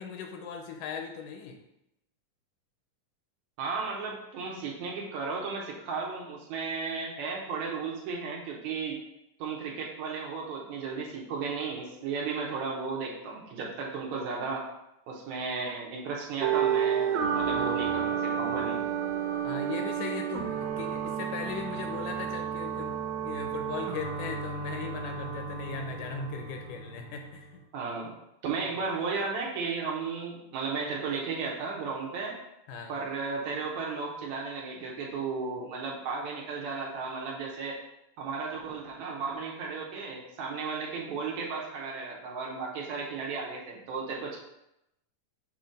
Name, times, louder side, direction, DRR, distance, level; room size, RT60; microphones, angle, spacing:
voice 1, 0.0-1.6 17.6-17.8 19.4-23.0 23.2-27.6 32.7-33.0, left 6 dB, 80° left, 4 dB, 2.0 m, -38 dB
voice 2, 3.6-9.0 9.4-14.6 15.1-18.8 27.7-28.1 28.4-32.3 32.9-37.8 38.2-44.4, right 4 dB, 70° right, -2 dB, 1.9 m, -34 dB
sound 1, 16.4-27.4, right 8 dB, 90° right, 2.3 m, -31 dB
6.3 x 2.9 x 5.1 m, 0.85 s
omnidirectional pair, 3.9 m